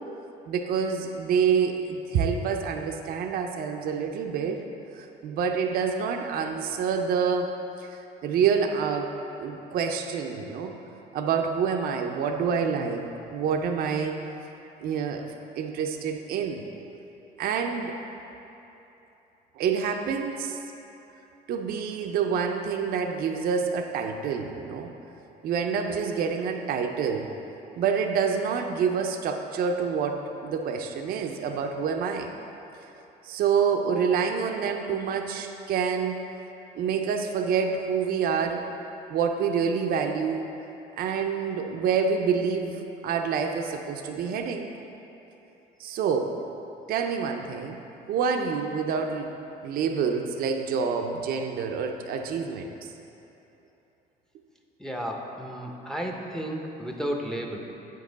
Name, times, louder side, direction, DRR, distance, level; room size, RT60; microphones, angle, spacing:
voice 1, 0.5-4.6 5.0-7.5 7.8-10.7 11.1-14.2 14.8-15.3 15.6-16.6 17.4-18.0 19.6-20.6 21.5-24.9 25.4-27.3 27.8-32.3 33.2-36.2 36.8-38.7 39.1-40.5 41.0-44.7 45.8-46.4 46.9-47.8 48.1-49.3 49.6-52.9, right 6 dB, 65° right, 4 dB, 0.5 m, -27 dB
voice 2, 54.8-57.6, equal, 5° left, 1 dB, 0.6 m, -33 dB
7.9 x 5.2 x 3.9 m, 3.0 s
cardioid pair, 110°, 17 cm